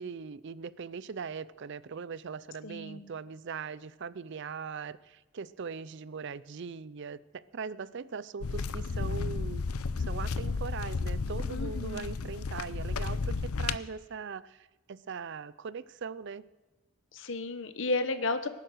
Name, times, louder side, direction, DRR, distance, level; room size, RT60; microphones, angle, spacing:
voice 1, 0.0-9.7 10.0-16.4, right 5 dB, 55° right, 17 dB, 0.5 m, -40 dB
voice 2, 2.6-3.1 11.5-12.2 17.1-18.5, left 2 dB, 55° left, 10 dB, 1.1 m, -33 dB
sound 1, 8.4-13.8, left 4 dB, 80° left, 0.6 m, -33 dB
19.0 x 10.5 x 6.3 m, 1.1 s
head